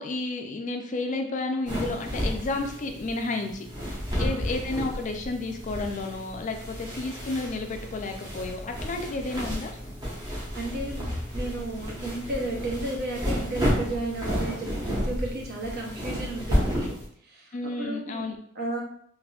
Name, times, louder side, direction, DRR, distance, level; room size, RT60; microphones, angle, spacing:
voice 1, 0.0-9.7 17.5-18.4, left 2 dB, 35° left, 4 dB, 0.3 m, -32 dB
sound 1, 1.7-17.1, equal, 20° right, 1.0 m, -32 dB
voice 2, 10.5-11.1 11.3-17.0 17.2-18.2 18.5-18.8, right 2 dB, 50° right, -1 dB, 0.8 m, -33 dB
3.5 x 2.5 x 2.3 m, 0.65 s
head